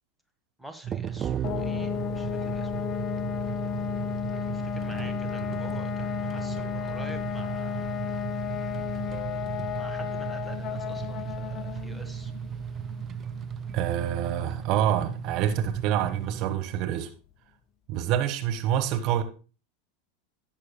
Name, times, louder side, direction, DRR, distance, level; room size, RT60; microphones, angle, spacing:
voice 1, 0.6-2.9 4.3-8.2 9.7-12.3, equal, ahead, 1.3 m, -47 dB
sound 1, 0.8-16.6, right 8 dB, 30° right, 0.5 m, -36 dB
sound 2, 1.4-16.0, left 10 dB, 40° left, 0.5 m, -34 dB
voice 2, 13.7-17.1 17.9-19.2, right 10 dB, 50° right, 1.2 m, -27 dB
16.0 x 6.5 x 2.2 m
figure-of-eight pair, 90°, 0 cm